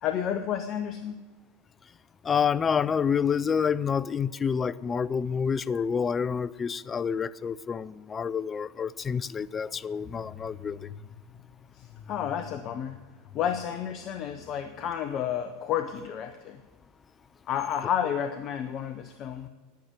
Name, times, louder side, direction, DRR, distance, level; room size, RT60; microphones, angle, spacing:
voice 1, 0.0-1.2 11.8-13.0 13.3-16.6 17.5-19.5, left 9 dB, 40° left, 8 dB, 0.9 m, -31 dB
voice 2, 2.2-10.9, left 6 dB, 25° left, 19 dB, 0.4 m, -28 dB
10.5 x 9.8 x 9.3 m, 1.3 s
figure-of-eight pair, 85°, 0 cm